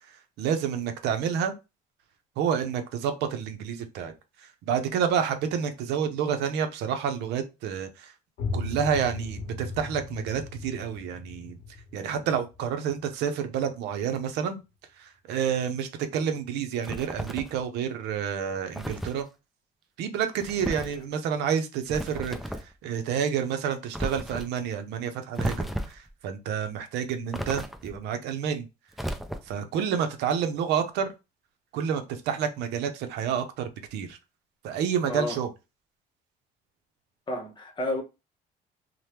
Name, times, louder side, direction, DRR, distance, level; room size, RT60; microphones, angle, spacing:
voice 1, 0.4-1.5 2.4-4.1 4.4-8.1 8.5-11.6 11.9-14.6 15.0-19.3 20.0-28.7 29.5-31.1 31.7-34.2 34.6-35.5, right 7 dB, 85° right, 0.6 m, -29 dB
sound 1, 8.4-14.0, left 3 dB, 65° left, 0.7 m, -37 dB
sound 2, 16.8-17.6 18.7-19.2 20.4-21.0 21.9-22.7 23.9-24.5 25.4-26.1 27.3-28.0 28.9-29.7, equal, ahead, 0.3 m, -34 dB
voice 2, 35.1-35.4 37.3-38.0, left 1 dB, 30° left, 0.8 m, -30 dB
2.9 x 2.1 x 3.2 m
cardioid pair, 110°, 17 cm